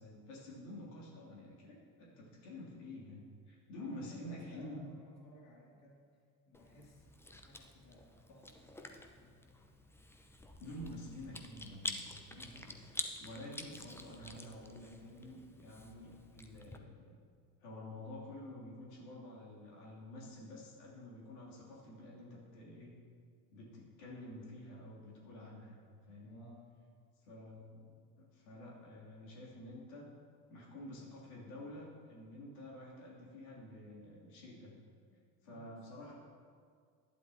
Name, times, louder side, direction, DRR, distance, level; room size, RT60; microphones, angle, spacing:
voice 1, 0.0-4.8 10.6-17.1 17.6-22.9 23.5-25.8 26.1-26.4 27.2-27.9 28.2-30.1 30.5-34.7 35.4-36.1, left 1 dB, 70° left, -5 dB, 2.8 m, -49 dB
voice 2, 3.7-9.4 20.0-20.2 21.4-21.5 26.2-26.8 35.1-36.1, left 1 dB, 35° left, -3 dB, 2.5 m, -60 dB
Chewing mastication, 6.5-16.8, left 1 dB, 5° left, 0.7 m, -48 dB
12.0 x 11.5 x 2.8 m, 2.1 s
figure-of-eight pair, 70°, 47 cm